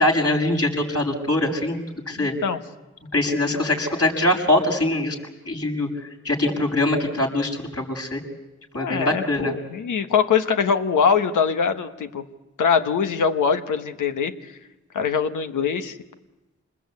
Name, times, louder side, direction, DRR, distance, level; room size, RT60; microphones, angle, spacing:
voice 1, 0.0-1.8 2.1-2.3 3.1-5.1 5.4-5.9 6.2-8.2 8.7-9.5, left 1 dB, 50° left, 1 dB, 6.6 m, -22 dB
voice 2, 2.2-2.6 8.7-12.2 12.6-14.5 14.9-16.0, left 6 dB, 85° left, 8 dB, 1.3 m, -23 dB
27.5 x 20.5 x 8.4 m, 1.1 s
supercardioid pair, 40°, 30 cm